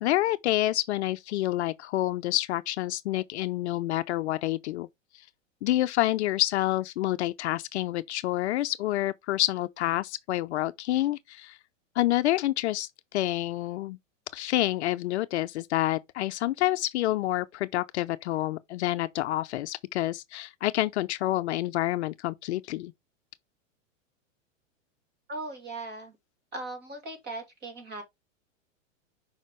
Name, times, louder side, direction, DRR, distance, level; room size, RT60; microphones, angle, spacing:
voice 1, 0.0-4.9 5.6-11.6 12.0-14.0 14.3-22.9, left 15 dB, 55° left, 0.6 m, -28 dB
voice 2, 25.3-26.1 26.5-28.0, right 2 dB, 25° right, 2.6 m, -38 dB
6.5 x 5.1 x 3.1 m
supercardioid pair, 150°, 39 cm